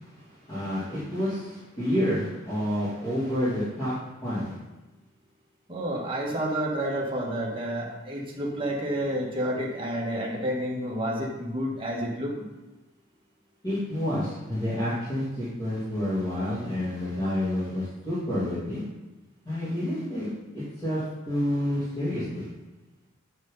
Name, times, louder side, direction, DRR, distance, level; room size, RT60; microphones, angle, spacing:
voice 1, 0.0-4.5 13.6-18.8 19.4-20.3 20.5-22.5, left 1 dB, 25° left, -13 dB, 3.0 m, -29 dB
voice 2, 5.7-12.3, right 1 dB, 25° right, -3 dB, 1.7 m, -30 dB
8.2 x 6.4 x 4.0 m, 1.1 s
head